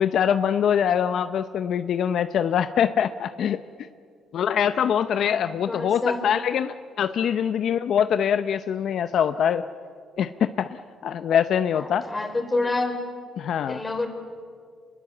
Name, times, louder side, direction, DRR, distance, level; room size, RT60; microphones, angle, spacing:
voice 1, 0.0-3.6 4.3-9.6 10.2-12.1 13.4-13.8, left 8 dB, 70° left, 11 dB, 0.7 m, -23 dB
voice 2, 5.1-6.2 11.7-13.0 13.7-14.1, left 2 dB, 20° left, 5 dB, 4.2 m, -28 dB
27.0 x 21.0 x 7.8 m, 2.1 s
cardioid pair, 90°, 0 cm